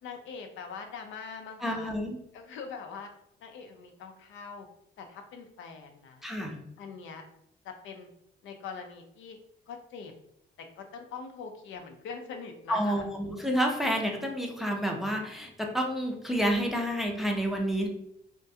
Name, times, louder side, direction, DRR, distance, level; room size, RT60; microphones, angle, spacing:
voice 1, 0.0-1.9 2.3-3.1 3.4-4.7 5.0-6.3 6.8-7.2 7.6-8.1 8.4-9.4 9.7-10.1 10.6-13.1, left 5 dB, 75° left, 5 dB, 0.5 m, -43 dB
voice 2, 1.6-2.2 6.2-6.6 12.7-17.9, equal, ahead, 1 dB, 0.4 m, -29 dB
2.3 x 2.2 x 2.7 m, 0.76 s
cardioid pair, 90°, 20 cm